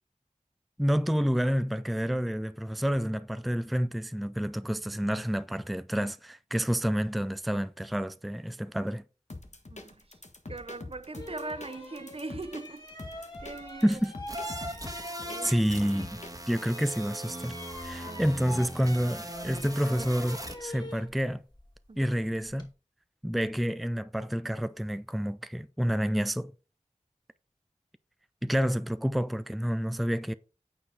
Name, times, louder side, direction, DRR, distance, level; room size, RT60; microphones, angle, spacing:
voice 1, 0.8-9.0 13.8-14.1 15.4-16.2 16.5-17.6 17.8-21.4 22.0-22.7 23.2-26.5 28.4-30.3, equal, ahead, 0.4 m, -29 dB
sound 1, 9.3-16.6, left 2 dB, 60° left, 1.3 m, -45 dB
voice 2, 9.7-10.2 10.5-14.0 14.8-15.5 18.0-18.3 21.9-22.2, right 3 dB, 45° right, 0.6 m, -41 dB
sound 2, 10.5-10.6 11.1-16.3 16.5-22.7, left 1 dB, 30° left, 3.0 m, -45 dB
sound 3, 14.3-20.5, right 1 dB, 25° right, 1.5 m, -39 dB
8.8 x 4.6 x 4.7 m
wide cardioid pair, 40°, 13 cm